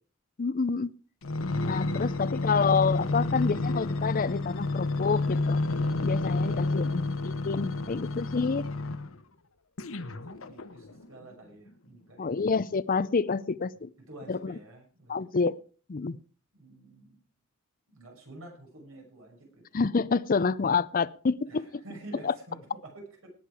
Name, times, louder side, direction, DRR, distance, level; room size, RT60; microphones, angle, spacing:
voice 1, 0.4-0.9 1.6-5.6 6.0-8.7 12.2-13.9 14.3-14.5 15.1-15.6 15.9-16.2 19.7-21.7 22.2-22.3, left 5 dB, 45° left, 0.5 m, -28 dB
sound 1, 1.2-9.2 9.8-11.1 11.7-11.8, left 2 dB, 75° left, 1.1 m, -30 dB
voice 2, 6.7-7.0 9.9-12.3 14.1-15.4 16.5-17.2 17.9-19.8 21.5-23.3, right 1 dB, 80° right, 6.4 m, -49 dB
18.5 x 8.7 x 4.9 m
head